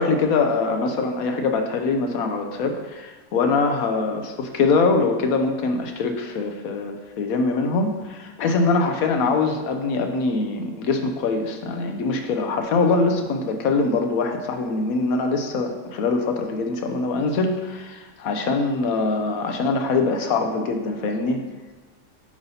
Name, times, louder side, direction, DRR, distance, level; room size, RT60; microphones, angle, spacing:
voice 1, 0.0-21.4, left 3 dB, 70° left, 5 dB, 1.0 m, -23 dB
7.9 x 5.4 x 2.7 m, 1.2 s
omnidirectional pair, 1.8 m